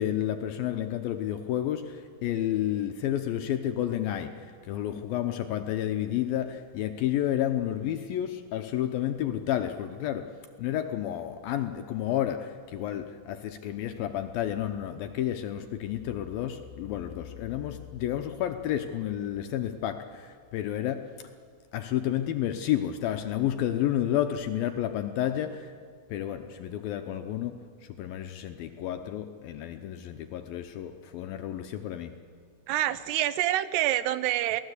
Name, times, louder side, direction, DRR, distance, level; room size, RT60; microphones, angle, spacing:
voice 1, 0.0-4.3 4.6-10.3 10.6-21.0 21.7-25.7 26.1-27.6 28.0-32.1, left 11 dB, 75° left, 7 dB, 2.2 m, -31 dB
voice 2, 32.7-34.6, right 13 dB, 80° right, 14 dB, 2.7 m, -27 dB
28.0 x 18.5 x 8.2 m, 2.1 s
omnidirectional pair, 4.9 m